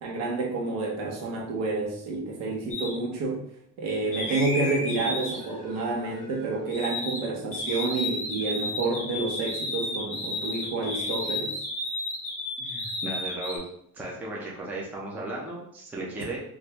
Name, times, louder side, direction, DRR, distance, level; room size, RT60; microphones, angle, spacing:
voice 1, 0.0-3.4 3.8-11.6, right 3 dB, 85° right, 0 dB, 1.0 m, -29 dB
sound 1, 2.7-2.9 4.1-7.2 7.5-13.6, left 2 dB, 20° left, 1.1 m, -33 dB
voice 2, 12.6-13.6 13.9-16.4, right 2 dB, 5° right, -3 dB, 0.3 m, -35 dB
2.9 x 2.5 x 3.3 m, 0.70 s
cardioid pair, 180°, 33 cm